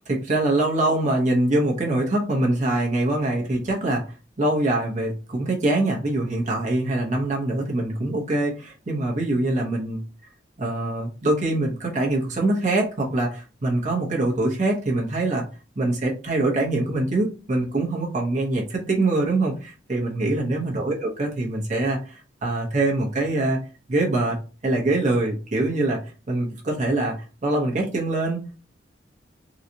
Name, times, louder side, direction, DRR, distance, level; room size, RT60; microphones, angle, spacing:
voice 1, 0.1-4.0 4.4-10.0 10.6-15.4 15.8-23.6 23.9-26.0 26.3-27.1 27.4-28.6, right 2 dB, 45° right, -2 dB, 1.0 m, -24 dB
3.9 x 2.4 x 2.8 m, 0.34 s
head